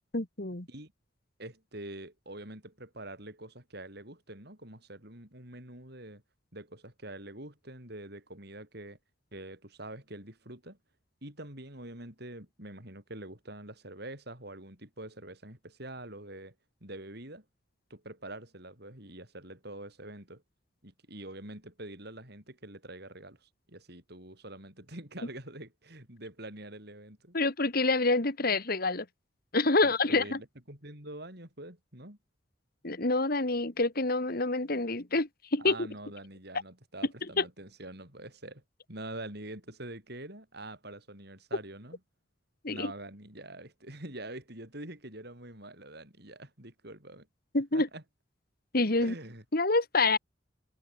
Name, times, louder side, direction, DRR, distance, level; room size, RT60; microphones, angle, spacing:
voice 1, 0.1-0.7 27.3-29.1 29.5-30.4 32.8-35.9 37.4-37.5 42.6-42.9 47.5-47.9 48.7-49.1 49.5-50.2, left 3 dB, 50° left, 2.0 m, -27 dB
voice 2, 1.4-6.2 6.5-9.0 9.3-10.8 11.2-16.5 16.8-17.4 17.9-20.4 20.8-27.4 29.8-32.2 35.6-38.6 38.9-42.0 42.7-47.3 47.7-48.0 49.0-49.4, right 1 dB, 55° right, 7.8 m, -45 dB
head